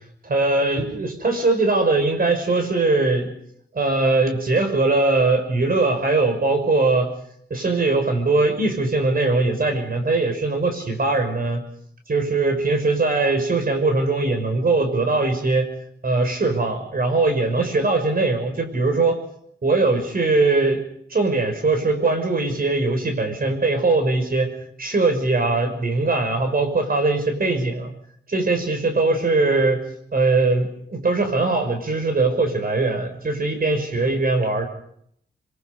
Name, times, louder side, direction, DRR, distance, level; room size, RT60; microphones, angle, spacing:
voice 1, 0.2-3.3 3.7-7.1 7.5-11.6 12.1-15.7 16.0-19.2 19.6-20.8 21.1-24.5 24.8-27.9 28.3-29.8 30.1-34.7, right 3 dB, 50° right, 6 dB, 6.3 m, -21 dB
28.0 x 23.0 x 5.5 m, 0.69 s
cardioid pair, 70°, 19 cm